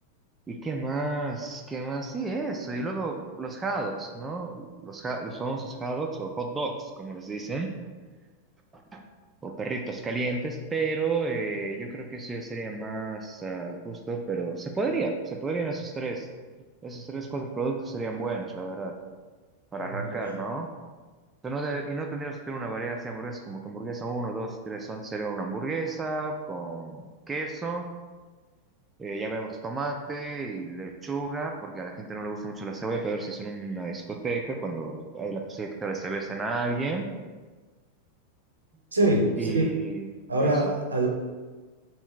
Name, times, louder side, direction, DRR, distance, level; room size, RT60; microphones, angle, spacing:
voice 1, 0.5-7.7 8.7-9.0 9.4-16.3 16.8-19.0 19.7-20.7 21.4-27.9 29.0-37.1 39.4-40.1 40.4-40.7, right 3 dB, 15° right, 2 dB, 0.4 m, -32 dB
voice 2, 19.8-20.4 38.9-39.7 40.3-41.1, right 1 dB, 75° right, 0 dB, 0.6 m, -24 dB
3.5 x 2.6 x 4.4 m, 1.3 s
figure-of-eight pair, 90°, 0 cm